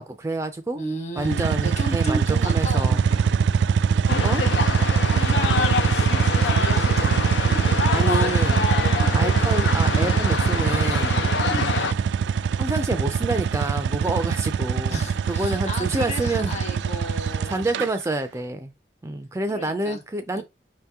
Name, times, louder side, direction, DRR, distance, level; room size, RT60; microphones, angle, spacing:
voice 1, 0.0-0.8 1.2-3.0 4.2-4.4 6.9-7.2 7.9-8.7 9.1-11.2 12.6-16.5 17.5-18.7 19.0-20.4, right 2 dB, 15° right, 0.4 m, -28 dB
voice 2, 0.7-3.3 5.1-7.4 8.9-9.2 11.4-11.7 14.9-17.6 19.5-20.0 20.3-20.4, equal, 40° left, 1.2 m, -34 dB
sound 1, 1.2-17.9, right 6 dB, 85° right, 0.3 m, -22 dB
sound 2, 4.1-11.9, left 5 dB, 90° left, 0.5 m, -26 dB
5.2 x 2.8 x 3.5 m
head